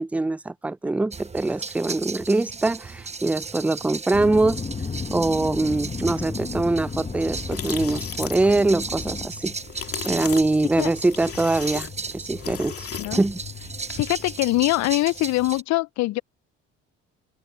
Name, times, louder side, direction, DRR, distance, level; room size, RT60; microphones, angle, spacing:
voice 1, 0.0-4.6 5.1-9.5 10.1-12.7 13.1-13.4, right 2 dB, 5° right, 0.3 m, -23 dB
sound 1, 1.1-15.6, right 4 dB, 20° right, 1.0 m, -36 dB
sound 2, 4.1-9.3, left 4 dB, 25° left, 1.3 m, -33 dB
sound 3, 7.3-14.3, left 8 dB, 50° left, 2.6 m, -36 dB
voice 2, 14.0-16.2, left 20 dB, 65° left, 0.4 m, -23 dB
open air
supercardioid pair, 75°, 30 cm